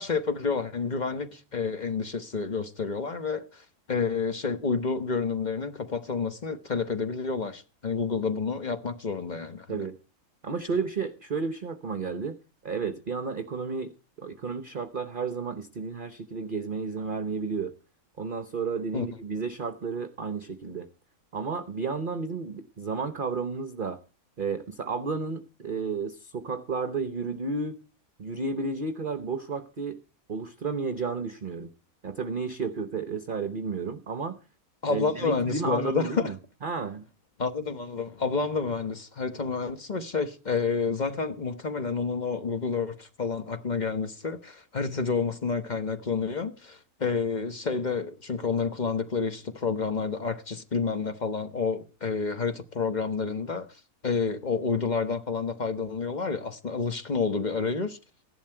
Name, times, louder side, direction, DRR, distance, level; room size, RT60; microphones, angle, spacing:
voice 1, 0.0-9.9 18.9-19.1 34.8-36.3 37.4-53.7 54.0-58.0, left 5 dB, 35° left, 1.0 m, -29 dB
voice 2, 10.4-12.4 12.6-13.9 14.2-17.7 18.2-20.9 21.3-24.0 24.4-27.8 28.2-30.0 30.3-31.7 32.0-34.4 34.9-36.3 36.6-37.0, right 4 dB, 40° right, 0.9 m, -32 dB
15.5 x 11.5 x 4.5 m
omnidirectional pair, 1.5 m